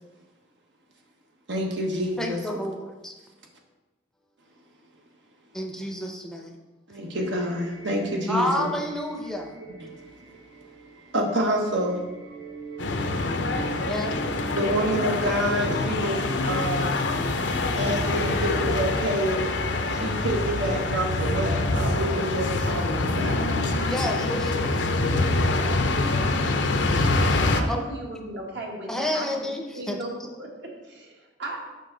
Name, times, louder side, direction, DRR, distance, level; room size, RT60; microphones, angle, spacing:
voice 1, 1.5-2.4 6.9-8.7 9.6-9.9 10.2-10.3 10.8-12.0 14.5-16.9 17.7-19.5 19.9-23.5, right 1 dB, 85° right, 1 dB, 1.1 m, -27 dB
voice 2, 2.2-3.1 5.5-6.6 8.3-9.6 13.9-14.3 23.8-24.7 27.7-27.9 28.9-30.0, left 1 dB, 5° left, 2 dB, 0.5 m, -30 dB
sound 1, 7.2-14.8, right 4 dB, 25° right, 0.9 m, -42 dB
sound 2, 12.8-27.6, left 2 dB, 80° left, 0.6 m, -25 dB
voice 3, 26.9-29.5 29.7-31.7, right 2 dB, 70° right, -1 dB, 1.4 m, -37 dB
6.6 x 5.4 x 3.8 m, 1.1 s
head